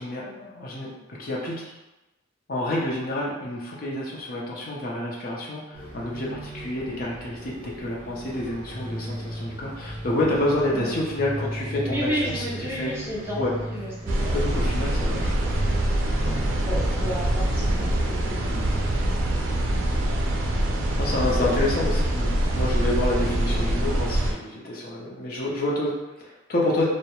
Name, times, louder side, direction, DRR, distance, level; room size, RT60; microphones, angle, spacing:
voice 1, 0.0-1.7 2.5-12.9 13.4-13.5 14.3-15.6 16.2-16.4 18.5-18.7 19.9-20.0 21.0-26.8, left 1 dB, 45° left, -4 dB, 0.5 m, -28 dB
sound 1, 5.7-19.1, right 1 dB, 40° right, 0.8 m, -37 dB
voice 2, 11.8-14.5 15.1-15.3 16.6-18.5, equal, 10° right, -6 dB, 0.5 m, -32 dB
sound 2, 14.1-24.3, right 1 dB, 75° right, 0.4 m, -24 dB
2.3 x 2.0 x 2.9 m, 1.0 s
head